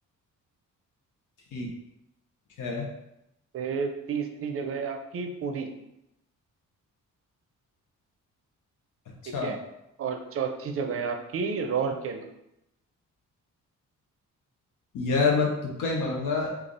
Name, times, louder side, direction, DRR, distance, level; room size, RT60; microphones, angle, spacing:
voice 1, 3.5-5.7 9.3-9.6 10.0-12.2, right 5 dB, 45° right, 5 dB, 0.5 m, -31 dB
voice 2, 14.9-16.6, left 4 dB, 80° left, -1 dB, 0.8 m, -26 dB
3.3 x 2.4 x 3.8 m, 0.84 s
cardioid pair, 135°, 31 cm